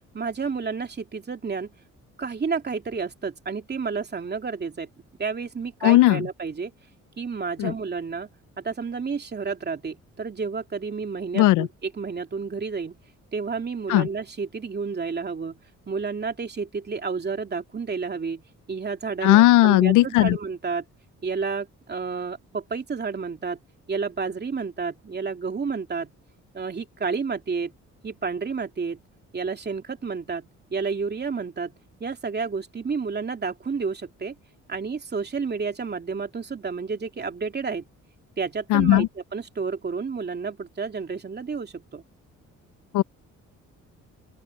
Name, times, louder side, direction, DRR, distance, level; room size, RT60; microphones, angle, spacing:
voice 1, 0.1-1.7 2.2-4.9 5.2-6.7 7.2-8.3 8.6-13.0 13.3-15.6 15.9-18.4 18.7-20.8 21.2-23.6 23.9-26.1 26.5-27.7 28.0-29.0 29.3-31.7 32.0-34.3 34.7-37.8 38.4-39.0 39.3-42.0, right 5 dB, 35° right, 2.8 m, -30 dB
voice 2, 5.8-6.3 7.6-7.7 11.3-11.7 13.9-14.1 19.2-20.4 38.7-39.1 42.9-43.0, left 16 dB, 90° left, 0.6 m, -17 dB
open air
cardioid pair, 90°, 30 cm